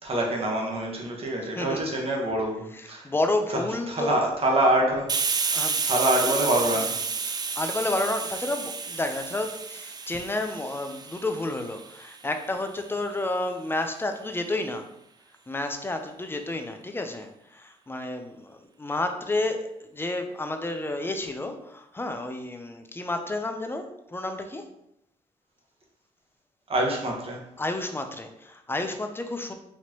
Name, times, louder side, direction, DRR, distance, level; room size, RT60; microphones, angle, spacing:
voice 1, 0.0-3.1 3.9-5.6 5.8-6.9 26.7-27.4, right 1 dB, 45° right, 0 dB, 1.2 m, -25 dB
voice 2, 2.7-4.3 5.5-5.8 6.8-6.9 7.6-14.9 15.5-24.7 27.6-29.5, left 2 dB, 15° left, 6 dB, 0.6 m, -31 dB
Hiss, 5.1-12.5, right 5 dB, 30° right, 0.4 m, -31 dB
4.3 x 2.9 x 2.9 m, 0.81 s
cardioid pair, 70°, 14 cm